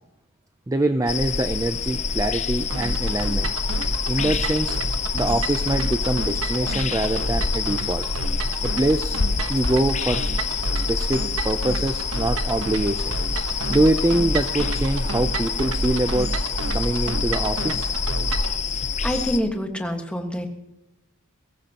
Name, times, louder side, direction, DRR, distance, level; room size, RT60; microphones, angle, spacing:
voice 1, 0.7-3.5 4.1-4.8 5.1-8.0 8.6-9.2 9.5-10.3 10.7-13.0 13.7-16.3 16.7-17.9, right 1 dB, 15° right, 8 dB, 0.5 m, -24 dB
sound 1, 1.1-19.4, left 4 dB, 30° left, 0.7 m, -27 dB
sound 2, 2.7-18.6, right 2 dB, 65° right, 1.2 m, -30 dB
voice 2, 19.0-20.5, equal, 5° left, 3 dB, 1.6 m, -26 dB
21.5 x 17.5 x 3.0 m, 0.92 s
head